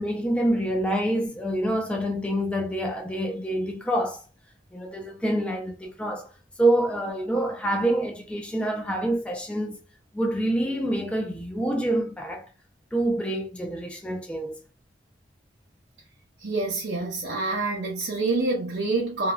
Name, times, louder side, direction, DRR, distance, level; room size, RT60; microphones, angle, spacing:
voice 1, 0.0-4.2 4.7-6.3 6.6-9.8 10.1-12.5 12.9-14.6, right 1 dB, 5° left, 0.3 m, -26 dB
voice 2, 16.4-19.3, right 3 dB, 70° right, 0.6 m, -27 dB
3.0 x 2.2 x 2.3 m
head